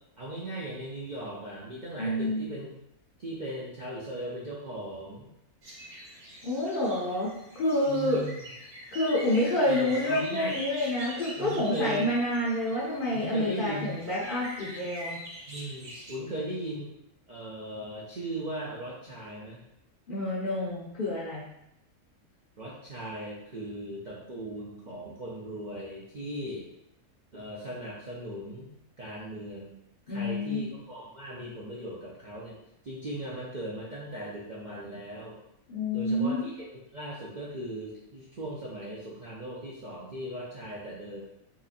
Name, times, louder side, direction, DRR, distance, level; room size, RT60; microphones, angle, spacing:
voice 1, 0.2-2.7 3.2-5.3 7.9-8.4 9.7-10.6 11.4-12.1 13.1-14.0 15.5-16.9 17.3-19.6 22.6-26.7 27.3-28.7 29.0-29.8 30.1-32.6 32.8-35.4 35.9-41.2, right 1 dB, 50° right, -7 dB, 0.5 m, -38 dB
voice 2, 2.0-2.5 6.4-7.3 7.5-8.3 8.9-15.2 20.1-21.4 30.1-30.6 35.7-36.4, left 1 dB, 50° left, -6 dB, 0.7 m, -28 dB
sound 1, 5.6-16.1, equal, 70° right, 1.5 m, -43 dB
4.0 x 2.8 x 2.5 m, 0.83 s
omnidirectional pair, 1.5 m